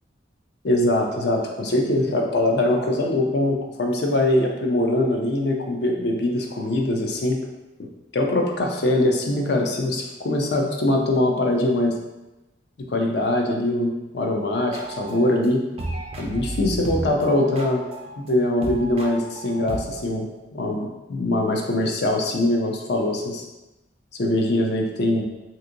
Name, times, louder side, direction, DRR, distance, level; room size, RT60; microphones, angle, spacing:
voice 1, 0.6-7.4 8.1-12.0 12.9-15.6 16.2-17.8 18.2-23.4 24.2-25.2, left 1 dB, 55° left, 2 dB, 0.5 m, -22 dB
sound 1, 14.6-15.5 15.8-20.2, right 1 dB, 30° right, 0.3 m, -34 dB
3.4 x 2.7 x 2.6 m, 1.0 s
head